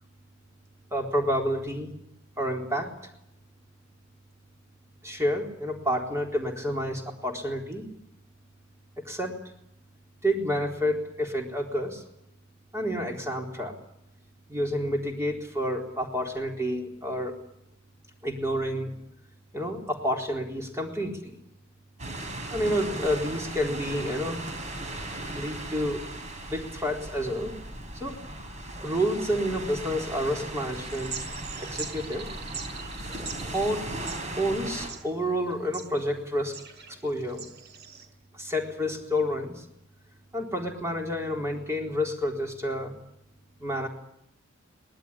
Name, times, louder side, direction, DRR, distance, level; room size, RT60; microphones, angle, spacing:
voice 1, 0.9-1.9 2.4-2.9 5.0-7.9 9.0-9.4 10.2-12.0 12.7-13.7 14.5-17.4 18.2-18.9 19.5-21.4 22.5-24.4 25.3-26.0 26.5-27.5 27.9-28.2 28.8-31.2 31.6-32.3 33.5-33.8 34.4-36.6 36.9-37.5 38.3-39.6 40.3-42.9 43.6-43.9, equal, 15° right, 1 dB, 4.0 m, -29 dB
sound 1, 22.0-34.9, right 1 dB, 35° right, 5.8 m, -37 dB
sound 2, 30.7-38.1, right 6 dB, 55° right, 5.4 m, -43 dB
23.5 x 19.5 x 9.9 m, 0.79 s
head